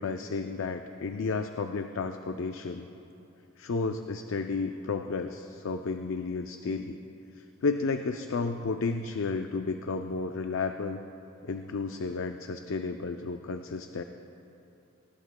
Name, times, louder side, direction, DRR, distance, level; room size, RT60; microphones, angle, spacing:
voice 1, 0.0-2.9 3.6-7.0 7.4-11.0 11.4-14.0, left 4 dB, 65° left, 6 dB, 0.5 m, -32 dB
19.5 x 18.5 x 2.2 m, 2.9 s
head